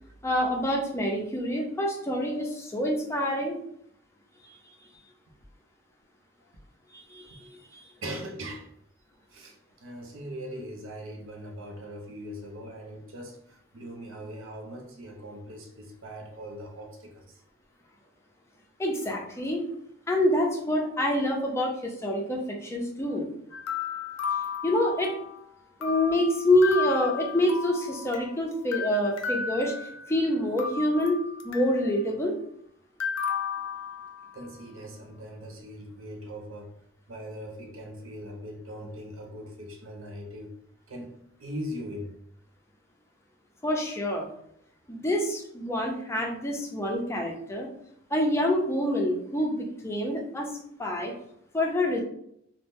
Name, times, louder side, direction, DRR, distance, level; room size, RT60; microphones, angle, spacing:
voice 1, 0.2-3.5 6.9-7.4 18.8-19.6 20.1-23.3 24.6-25.1 25.8-29.7 30.1-31.2 31.4-32.4 43.6-44.3 44.9-47.7 48.1-49.6 49.8-50.5 50.8-51.1 51.5-52.0, left 1 dB, 15° left, 0.5 m, -26 dB
voice 2, 8.0-8.7 9.3-9.6 9.8-17.4 34.3-36.7 37.1-40.5 40.9-41.1 41.4-42.2, equal, 70° right, 0.6 m, -40 dB
sound 1, 23.5-25.4 25.8-28.3 28.7-30.2 30.6-31.9 33.0-34.4, left 6 dB, 90° left, 0.5 m, -34 dB
2.6 x 2.0 x 3.4 m
head